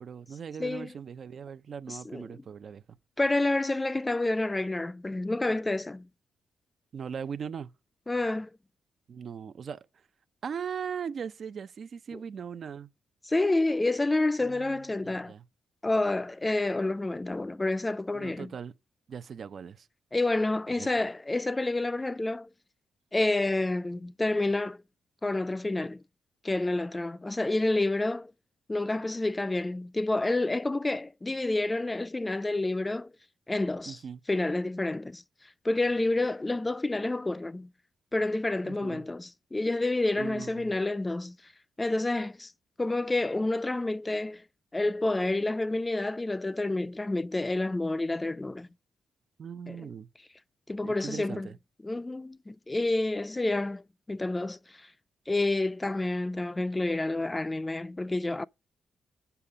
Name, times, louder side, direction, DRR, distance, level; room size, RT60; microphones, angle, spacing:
voice 1, 0.0-3.0 6.9-7.7 9.1-9.9 10.4-12.9 14.4-14.8 15.0-15.4 18.1-18.7 19.1-19.9 20.8-20.9 33.9-34.2 38.6-39.1 40.2-40.7 49.4-50.1 50.8-51.6, right 7 dB, 60° right, 0.6 m, -39 dB
voice 2, 0.6-0.9 1.9-2.2 3.2-6.1 8.1-8.5 12.1-12.2 13.3-15.3 15.8-18.5 20.1-22.5 23.1-24.8 25.2-26.0 26.4-28.3 28.7-33.1 33.5-34.0 34.3-35.2 35.6-37.7 38.1-41.4 41.8-42.5 42.8-44.4 44.7-48.7 49.7-49.8 50.7-51.5 51.8-53.8 54.1-54.9 55.3-58.4, left 2 dB, 20° left, 0.4 m, -29 dB
7.0 x 5.8 x 4.9 m
supercardioid pair, 55°, 0 cm